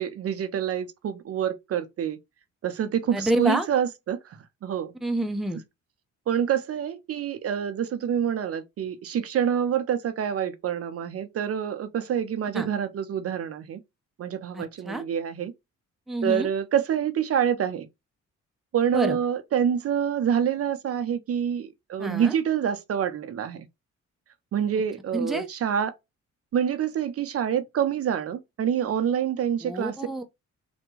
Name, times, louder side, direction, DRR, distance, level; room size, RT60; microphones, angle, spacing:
voice 1, 0.0-2.2 2.6-4.9 6.3-13.8 14.2-15.5 16.2-17.9 18.7-23.7 24.5-25.9 26.5-30.0, right 8 dB, 50° right, 0.6 m, -27 dB
voice 2, 3.1-3.7 5.0-5.6 12.5-12.7 14.5-15.0 16.1-16.5 18.9-19.2 22.0-22.3 25.1-25.5 29.6-30.2, right 1 dB, ahead, 0.6 m, -28 dB
3.4 x 2.1 x 3.0 m
cardioid pair, 90°, 30 cm